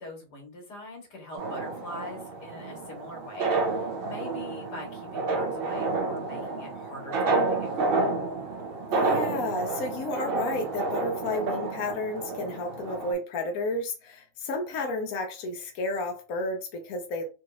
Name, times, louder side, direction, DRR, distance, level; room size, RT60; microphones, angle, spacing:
voice 1, 0.0-8.1, left 1 dB, 85° left, 1 dB, 2.0 m, -43 dB
sound 1, 1.4-13.1, right 3 dB, 90° right, 0.5 m, -30 dB
voice 2, 8.9-17.2, left 2 dB, 65° left, 3 dB, 1.2 m, -32 dB
4.1 x 2.9 x 2.4 m, 0.33 s
omnidirectional pair, 1.8 m